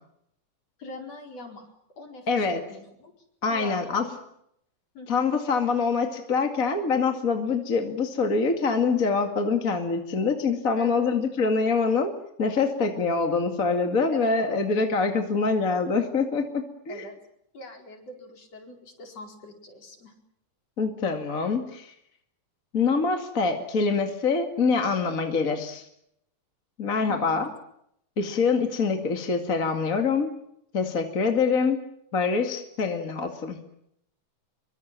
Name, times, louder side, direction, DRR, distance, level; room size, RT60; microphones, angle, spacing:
voice 1, 0.8-1.7 2.0-3.1 3.5-4.2 4.9-5.2 10.8-11.1 14.1-14.6 16.9-17.2 17.5-20.1 27.1-27.5, left 2 dB, 55° left, 3 dB, 5.6 m, -42 dB
voice 2, 2.3-2.6 3.4-4.0 5.1-12.1 12.4-17.1 20.8-21.9 22.7-25.8 26.8-27.5 28.2-30.3 30.7-31.8 32.1-33.6, left 4 dB, 30° left, 5 dB, 2.4 m, -25 dB
26.0 x 24.0 x 7.5 m, 0.76 s
omnidirectional pair, 3.5 m